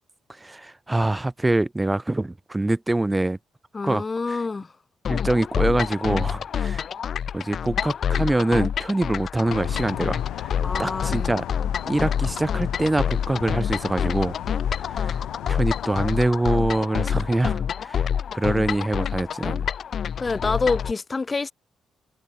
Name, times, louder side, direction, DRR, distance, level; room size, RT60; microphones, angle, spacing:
voice 1, 0.4-3.4 3.8-4.4 5.1-6.8 7.3-10.5 10.8-11.5 11.8-14.3 14.9-15.2 15.5-19.7, right 2 dB, 15° right, 1.7 m, -24 dB
voice 2, 3.7-4.7 10.6-11.4 20.2-21.5, left 4 dB, 30° left, 3.9 m, -27 dB
sound 1, 5.0-20.9, left 8 dB, 55° left, 3.0 m, -27 dB
sound 2, 9.4-16.2, left 15 dB, 90° left, 3.0 m, -36 dB
cardioid pair, 90°, 0 cm